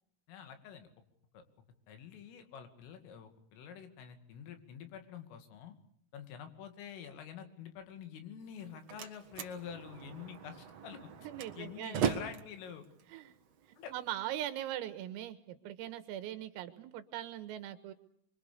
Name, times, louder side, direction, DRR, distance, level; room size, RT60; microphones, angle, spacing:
voice 1, 0.3-0.9 1.3-1.4 1.9-5.7 6.1-11.0 11.6-12.9 13.8-13.9, left 8 dB, 75° left, 8 dB, 4.9 m, -47 dB
Slam, 8.4-14.4, right 7 dB, 70° right, 1.5 m, -40 dB
voice 2, 11.2-12.2 13.1-13.3 13.9-17.9, right 12 dB, 90° right, 9 dB, 4.2 m, -41 dB
25.0 x 25.0 x 6.8 m, 0.68 s
omnidirectional pair, 5.9 m